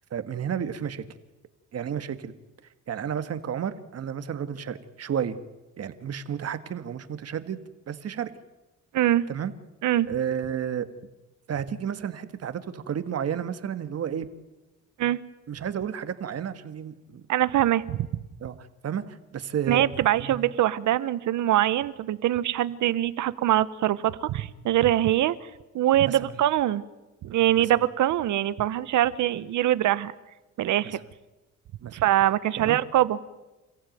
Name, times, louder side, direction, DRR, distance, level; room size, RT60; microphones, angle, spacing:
voice 1, 0.1-1.0 1.7-2.3 2.9-5.4 5.8-7.6 7.9-8.3 9.3-9.5 10.1-10.9 11.5-14.3 15.5-17.2 18.4-19.9 20.2-20.5 26.1-26.3 27.6-27.7 30.8-31.0 31.8-32.0 32.6-32.8, right 8 dB, 55° right, 11 dB, 1.8 m, -32 dB
voice 2, 8.9-9.2 9.8-10.1 15.0-15.2 17.3-18.1 19.7-25.5 25.7-26.8 27.2-30.1 30.6-31.0 31.9-33.2, right 13 dB, 75° right, 17 dB, 1.1 m, -23 dB
29.0 x 15.0 x 9.2 m, 1.1 s
cardioid pair, 90°, 30 cm